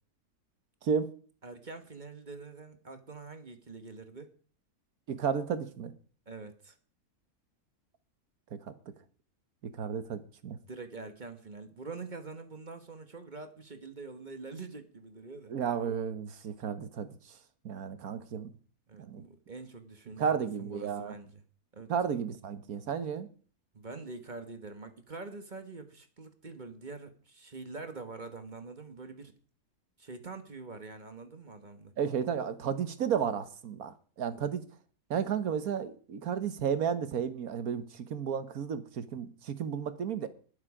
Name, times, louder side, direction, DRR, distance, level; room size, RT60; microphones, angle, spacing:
voice 1, 0.8-1.1 5.1-5.9 9.7-10.6 15.5-17.1 17.6-18.5 19.0-19.2 20.2-21.1 21.9-23.3 32.0-34.6 35.1-40.3, right 7 dB, 80° right, 1.6 m, -33 dB
voice 2, 1.4-4.3 6.3-6.7 10.7-15.5 18.9-21.4 21.7-21.9 23.7-29.3 30.0-31.9 34.3-34.4, right 3 dB, 35° right, 1.4 m, -45 dB
20.0 x 7.3 x 4.9 m
omnidirectional pair, 1.5 m